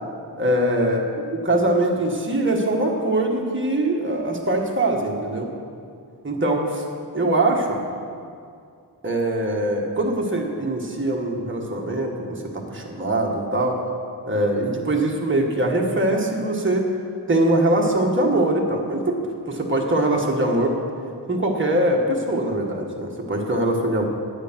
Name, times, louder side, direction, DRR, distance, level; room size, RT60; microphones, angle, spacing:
voice 1, 0.4-1.0 1.3-5.5 6.2-6.8 7.1-7.8 9.0-13.8 14.3-16.9 17.3-19.2 19.5-20.7 21.3-24.0, right 1 dB, 30° right, 0 dB, 1.5 m, -22 dB
9.1 x 8.2 x 6.0 m, 2.3 s
wide cardioid pair, 60°, 42 cm